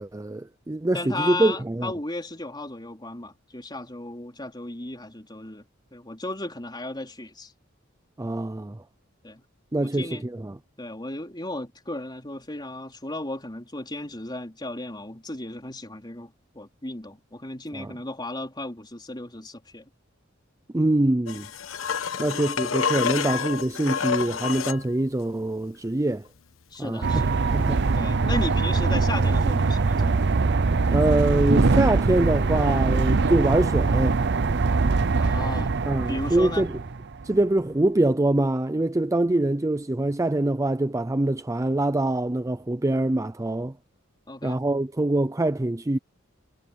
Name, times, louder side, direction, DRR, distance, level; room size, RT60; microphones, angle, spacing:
voice 1, 0.0-1.9 8.2-8.8 9.7-10.6 17.7-17.9 20.7-21.5 22.2-26.3 26.8-27.2 27.5-27.9 30.9-34.2 35.8-36.8 37.2-43.7 44.4-46.0, right 2 dB, 15° right, 0.5 m, -24 dB
voice 2, 0.9-7.5 9.2-9.4 9.8-10.3 10.8-19.9 22.1-22.3 26.7-27.4 27.9-30.2 35.1-35.7 36.1-36.7 44.3-44.6, left 2 dB, 20° left, 4.0 m, -35 dB
sound 1, 21.3-24.8 27.7-27.8, left 6 dB, 85° left, 1.2 m, -28 dB
sound 2, 27.0-37.2, right 3 dB, 60° right, 0.7 m, -22 dB
head